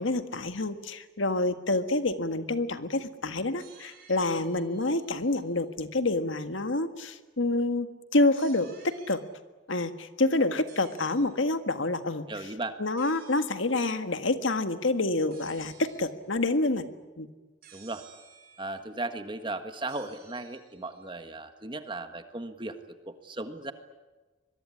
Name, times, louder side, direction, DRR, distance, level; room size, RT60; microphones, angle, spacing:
voice 1, 0.0-9.2 9.7-12.2 12.8-16.9 17.2-17.3, left 2 dB, 70° left, 9 dB, 1.7 m, -28 dB
sound 1, 3.6-5.6 8.4-9.2 10.7-11.3 13.0-13.6 15.3-16.1 17.6-18.8 19.9-21.1, right 7 dB, 45° right, 5.4 m, -55 dB
voice 2, 12.3-12.8 17.7-18.0 18.6-23.7, right 2 dB, 25° right, 8 dB, 1.6 m, -36 dB
25.0 x 22.0 x 9.9 m, 1.2 s
head